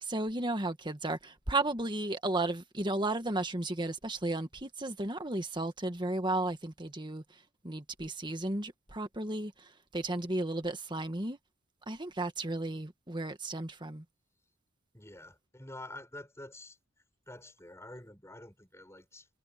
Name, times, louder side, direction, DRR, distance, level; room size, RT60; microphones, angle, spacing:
voice 1, 0.0-7.2 7.6-11.4 11.9-14.0, right 2 dB, 20° right, 1.8 m, -34 dB
voice 2, 14.9-16.8 17.3-19.3, left 1 dB, 15° left, 7.5 m, -48 dB
head